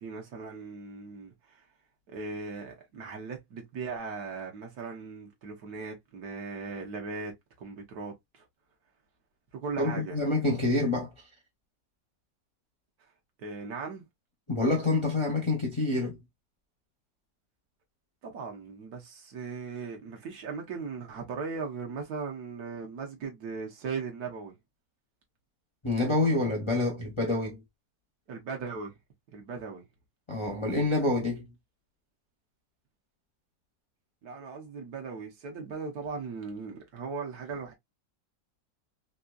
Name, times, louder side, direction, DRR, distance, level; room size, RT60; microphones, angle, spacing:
voice 1, 0.0-1.7 2.1-8.4 9.5-10.2 13.4-14.1 18.2-24.5 28.3-29.0 29.3-29.8 34.2-37.7, right 4 dB, 65° right, 1.3 m, -38 dB
voice 2, 9.8-11.1 14.5-16.2 25.8-27.6 30.3-31.5, left 2 dB, 35° left, 0.4 m, -27 dB
3.5 x 2.7 x 2.3 m
omnidirectional pair, 1.9 m